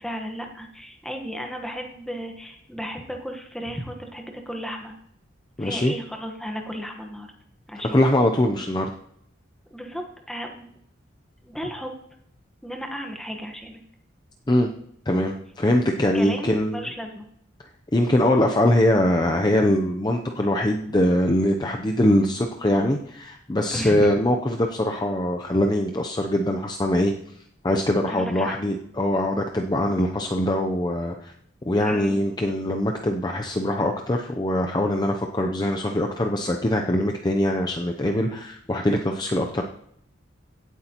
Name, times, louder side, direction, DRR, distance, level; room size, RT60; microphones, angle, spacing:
voice 1, 0.0-4.9 5.6-7.3 7.7-8.0 9.7-10.7 11.4-11.9 12.6-13.8 16.1-17.3 23.7-24.1 28.1-28.5 31.8-32.2, equal, ahead, 3 dB, 1.2 m, -34 dB
voice 2, 5.6-5.9 7.9-8.9 14.5-14.7 15.1-16.9 17.9-27.1 27.6-31.3 31.7-39.6, left 1 dB, 20° left, 3 dB, 0.5 m, -22 dB
16.5 x 8.2 x 2.9 m, 0.70 s
head